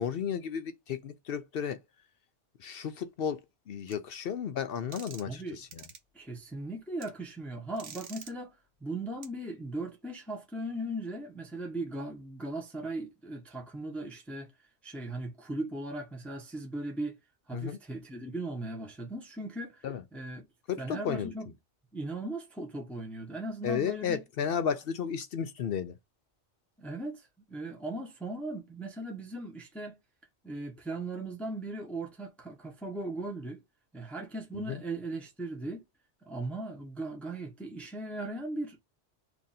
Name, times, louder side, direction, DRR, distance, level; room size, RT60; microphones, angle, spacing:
voice 1, 0.0-1.8 2.6-3.4 3.7-5.8 17.5-17.8 19.8-20.0 20.7-21.3 23.6-26.0 34.5-34.8, left 7 dB, 65° left, 0.7 m, -33 dB
sound 1, 3.9-4.0 4.9-5.4 5.7-6.0 7.0-7.1 7.8-8.3 9.2-9.3, right 7 dB, 90° right, 1.1 m, -46 dB
voice 2, 5.3-5.6 6.1-14.5 14.8-17.2 17.5-19.9 20.1-20.5 20.8-21.5 21.9-24.2 26.8-30.0 30.4-33.6 33.9-35.8 36.2-38.8, right 2 dB, ahead, 0.7 m, -38 dB
2.9 x 2.5 x 4.1 m
omnidirectional pair, 1.2 m